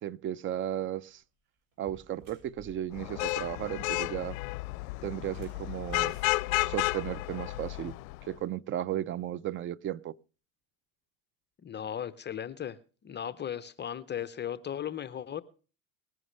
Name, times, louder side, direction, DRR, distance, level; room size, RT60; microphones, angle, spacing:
voice 1, 0.0-1.2 1.8-4.4 5.0-6.2 6.7-8.0 8.2-10.2, right 11 dB, 30° right, 0.5 m, -35 dB
sound 1, 1.0-1.2 1.7-3.5 5.2-7.3, right 1 dB, 50° right, 7.3 m, -55 dB
Vehicle horn car horn honking / Traffic noise roadway noise, 3.0-8.2, left 21 dB, 75° left, 0.6 m, -32 dB
voice 2, 11.6-12.8 13.0-15.4, left 9 dB, 25° left, 0.7 m, -36 dB
20.0 x 11.0 x 3.2 m
supercardioid pair, 105°, 42 cm